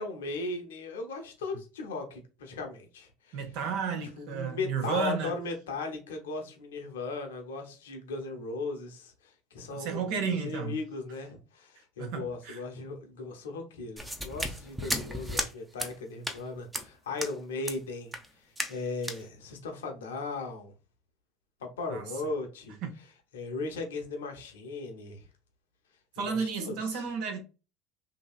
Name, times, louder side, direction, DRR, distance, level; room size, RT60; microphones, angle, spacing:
voice 1, 0.0-3.4 4.2-20.7 21.6-22.8 23.3-25.2 26.2-27.1, left 3 dB, 85° left, 0.8 m, -37 dB
voice 2, 3.3-5.4 9.7-10.8 12.0-12.6 21.9-22.0 22.8-22.9 26.2-27.4, right 6 dB, 65° right, 0.8 m, -32 dB
sound 1, 14.0-15.5 15.8-15.9 16.2-16.4 16.7-16.9 17.2-17.3 17.6-17.8 18.1-18.3 18.6-18.8 19.0-19.2, equal, 10° right, 0.7 m, -34 dB
2.8 x 2.7 x 2.3 m
hypercardioid pair, 80°, 0 cm